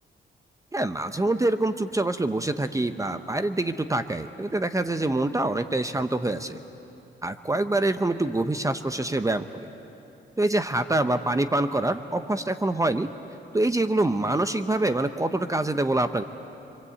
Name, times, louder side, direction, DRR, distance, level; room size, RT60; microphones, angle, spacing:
voice 1, 0.7-6.6 7.2-9.7 10.4-13.1 13.5-16.2, right 2 dB, 15° right, 10 dB, 0.8 m, -25 dB
28.0 x 23.5 x 8.4 m, 2.9 s
cardioid pair, 90°, 19 cm